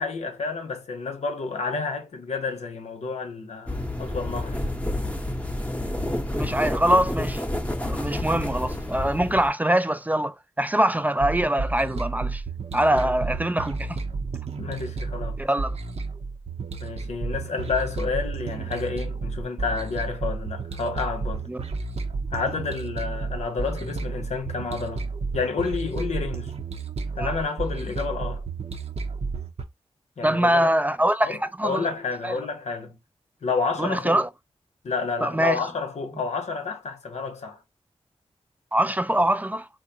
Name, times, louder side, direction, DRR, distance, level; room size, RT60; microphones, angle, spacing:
voice 1, 0.0-4.7 12.9-13.1 14.6-15.4 16.8-21.5 22.3-26.6 27.2-28.5 30.2-30.7 31.2-33.0 33.4-34.2 34.8-37.6, left 4 dB, 85° left, 0.8 m, -30 dB
sound 1, 3.7-9.5, left 1 dB, 10° left, 0.8 m, -29 dB
voice 2, 6.3-7.4 7.8-12.4 12.7-14.0 15.4-15.8 21.5-21.6 27.2-27.3 30.2-31.9 32.2-32.3 33.8-34.3 35.2-35.6 38.7-39.7, right 1 dB, 15° right, 0.3 m, -23 dB
sound 2, 11.2-29.6, right 4 dB, 70° right, 0.6 m, -31 dB
3.8 x 2.6 x 2.7 m
cardioid pair, 55°, 11 cm